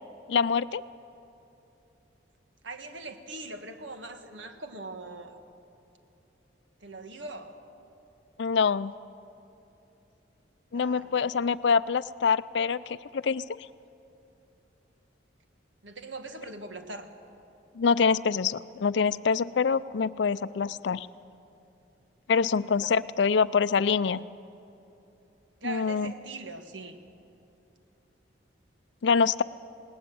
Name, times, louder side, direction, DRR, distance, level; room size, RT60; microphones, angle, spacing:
voice 1, 0.3-0.8 8.4-8.9 10.7-13.4 17.8-21.1 22.3-24.2 25.6-26.1 29.0-29.4, left 5 dB, 70° left, 16 dB, 0.4 m, -25 dB
voice 2, 2.6-5.4 6.8-7.6 10.7-11.3 15.8-17.1 22.4-22.6 25.6-27.0, right 2 dB, 80° right, 6 dB, 1.6 m, -41 dB
20.0 x 18.5 x 7.7 m, 2.9 s
head